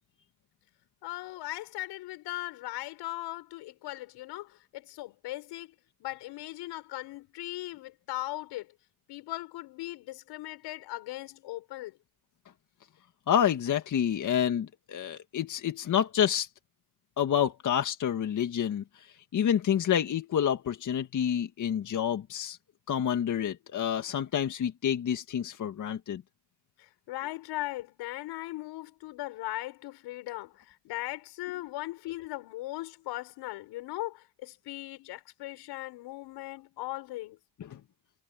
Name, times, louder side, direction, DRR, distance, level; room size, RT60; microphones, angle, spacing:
voice 1, 1.0-5.7 6.0-8.7 9.1-11.9 26.8-37.4, left 17 dB, 80° left, 7.3 m, -38 dB
voice 2, 13.3-16.5 17.2-22.6 22.9-26.2 37.6-37.8, left 9 dB, 50° left, 1.8 m, -28 dB
cardioid pair, 100°, 41 cm